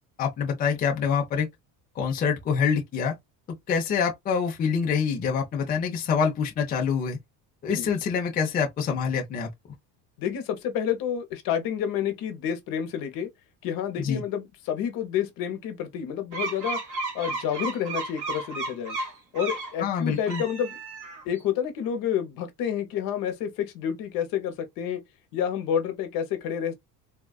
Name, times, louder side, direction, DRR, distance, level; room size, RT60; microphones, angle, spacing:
voice 1, 0.2-1.5 2.0-3.1 3.7-7.2 7.6-9.5 14.0-14.2 19.8-20.4, left 6 dB, 25° left, 0.5 m, -26 dB
voice 2, 10.2-13.3 13.6-16.8 17.1-19.0 19.3-20.8 21.2-25.0 25.3-26.7, left 9 dB, 65° left, 0.9 m, -29 dB
sound 1, 16.3-19.7 20.2-21.4, right 3 dB, 55° right, 1.6 m, -33 dB
3.5 x 2.2 x 2.3 m
cardioid pair, 160°, 36 cm